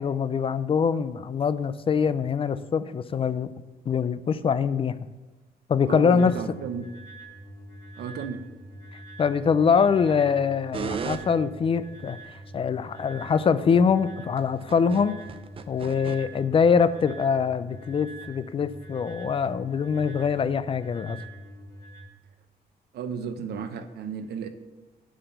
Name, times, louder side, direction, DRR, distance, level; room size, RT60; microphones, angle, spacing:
voice 1, 0.0-3.5 3.9-5.0 5.7-6.4 9.2-15.2 15.7-21.2, left 6 dB, 35° left, 14 dB, 0.4 m, -24 dB
voice 2, 5.9-6.9 8.0-8.4 22.9-24.5, right 6 dB, 90° right, 9 dB, 0.9 m, -33 dB
sound 1, 6.2-22.0, right 2 dB, 60° left, 3.0 m, -45 dB
sound 2, 10.7-11.2 12.2-12.3 14.4-16.2 16.8-16.9, right 6 dB, 35° right, 0.5 m, -33 dB
8.0 x 6.0 x 6.7 m, 1.2 s
cardioid pair, 135°, 16 cm